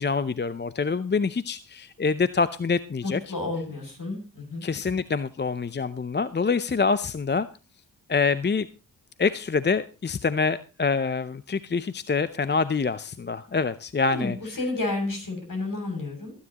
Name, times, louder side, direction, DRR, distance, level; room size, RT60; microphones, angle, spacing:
voice 1, 0.0-3.2 4.6-7.5 8.1-8.7 9.2-14.4, left 4 dB, 30° left, 14 dB, 0.6 m, -26 dB
voice 2, 3.0-4.6 14.0-16.3, left 2 dB, 55° left, 3 dB, 6.9 m, -31 dB
21.5 x 9.9 x 2.9 m, 0.32 s
cardioid pair, 50°, 39 cm